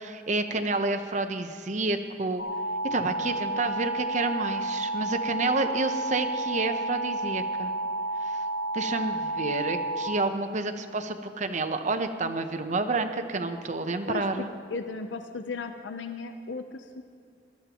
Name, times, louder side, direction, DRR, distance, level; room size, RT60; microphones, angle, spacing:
voice 1, 0.0-2.4 2.9-7.7 8.2-8.4 8.7-14.5, right 3 dB, 40° right, 7 dB, 0.8 m, -29 dB
sound 1, 2.4-10.1, right 2 dB, 70° left, 2.2 m, -31 dB
voice 2, 14.1-17.0, left 4 dB, 85° left, 7 dB, 0.7 m, -36 dB
21.5 x 13.0 x 3.0 m, 2.4 s
head